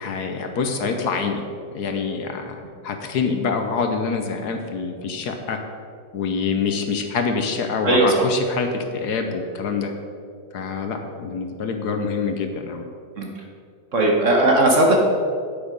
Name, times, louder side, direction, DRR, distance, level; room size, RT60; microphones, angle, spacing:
voice 1, 0.0-1.4 1.7-2.5 2.8-5.6 6.1-9.9 10.5-12.8, left 5 dB, 65° left, 5 dB, 1.4 m, -25 dB
voice 2, 13.9-15.0, right 1 dB, 45° right, 0 dB, 1.5 m, -17 dB
9.4 x 8.7 x 5.3 m, 2.3 s
omnidirectional pair, 1.9 m